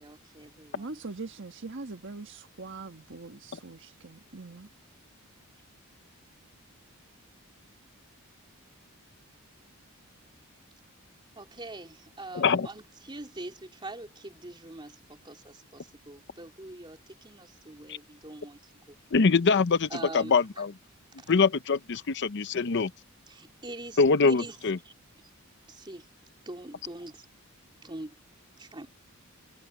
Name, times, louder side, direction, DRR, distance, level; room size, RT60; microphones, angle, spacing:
voice 1, 0.0-1.0 11.4-19.0 19.5-19.6 19.9-20.6 23.3-24.6 24.8-24.9 25.7-26.1 26.4-27.3 27.8-28.1 28.6-28.9, right 2 dB, 20° right, 3.0 m, -44 dB
voice 2, 0.8-4.7, right 3 dB, 60° right, 1.5 m, -42 dB
voice 3, 12.3-12.7 17.9-18.0 19.1-19.9 20.1-20.7 21.3-22.9 24.0-24.8, left 4 dB, 55° left, 0.6 m, -23 dB
head